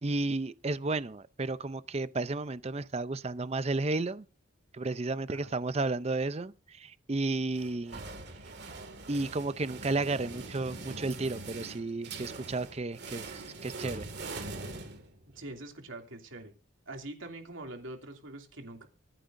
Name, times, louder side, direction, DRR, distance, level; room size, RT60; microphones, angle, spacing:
voice 1, 0.0-4.3 4.7-8.0 9.1-14.1, right 2 dB, 30° right, 0.5 m, -33 dB
sound 1, 7.5-15.5, right 3 dB, 55° right, 2.2 m, -43 dB
voice 2, 15.3-16.5 16.9-18.9, right 2 dB, 75° right, 2.7 m, -44 dB
25.0 x 9.0 x 2.6 m
head